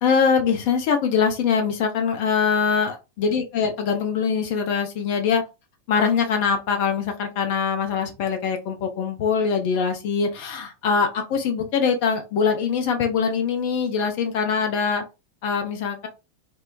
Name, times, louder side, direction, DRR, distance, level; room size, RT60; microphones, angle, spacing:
voice 1, 0.0-5.4 5.9-15.0 15.4-16.1, left 6 dB, 45° left, 6 dB, 0.7 m, -23 dB
3.0 x 2.1 x 2.3 m, 0.27 s
figure-of-eight pair, 90°, 0 cm